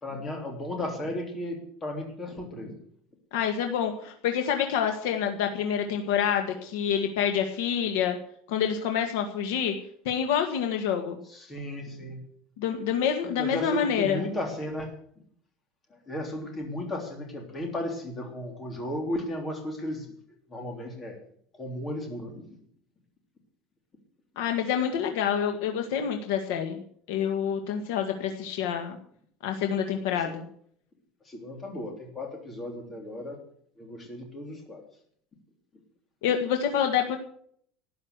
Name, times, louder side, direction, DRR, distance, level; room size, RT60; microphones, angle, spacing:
voice 1, 0.0-2.7 11.3-12.2 13.4-14.9 16.1-20.1 20.5-21.2 21.5-22.4 30.2-30.3 31.2-33.4 33.8-34.8, left 1 dB, 15° left, 2 dB, 3.3 m, -35 dB
voice 2, 3.3-8.2 8.5-9.7 10.0-11.2 12.6-14.2 24.3-26.8 27.1-29.0 29.4-30.4 36.2-37.2, left 8 dB, 85° left, 5 dB, 1.7 m, -27 dB
13.0 x 9.7 x 8.2 m, 0.63 s
cardioid pair, 175°, 0 cm